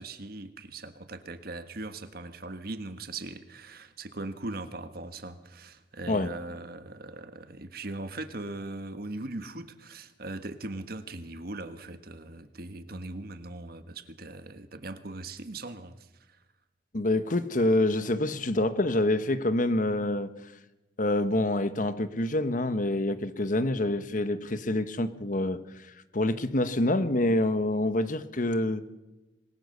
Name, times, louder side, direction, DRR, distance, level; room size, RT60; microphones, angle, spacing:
voice 1, 0.0-16.1, right 2 dB, 55° right, 9 dB, 1.5 m, -40 dB
voice 2, 16.9-20.3 21.0-25.6 26.1-28.9, left 1 dB, 45° left, 11 dB, 1.2 m, -26 dB
26.5 x 21.0 x 6.7 m, 1.1 s
head